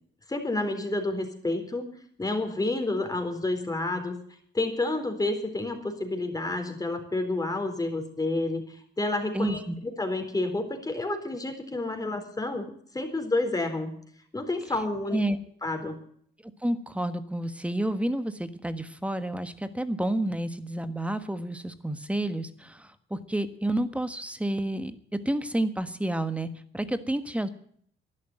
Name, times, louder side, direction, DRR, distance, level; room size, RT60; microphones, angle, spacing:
voice 1, 0.3-1.9 2.2-4.2 4.5-13.9 14.3-15.2 15.6-16.0, left 2 dB, 20° left, 5 dB, 4.0 m, -29 dB
voice 2, 9.3-9.7 15.1-15.4 16.6-26.5 26.7-27.5, right 1 dB, 5° right, 11 dB, 1.5 m, -30 dB
11.5 x 11.5 x 9.1 m, 0.62 s
cardioid pair, 90°, 20 cm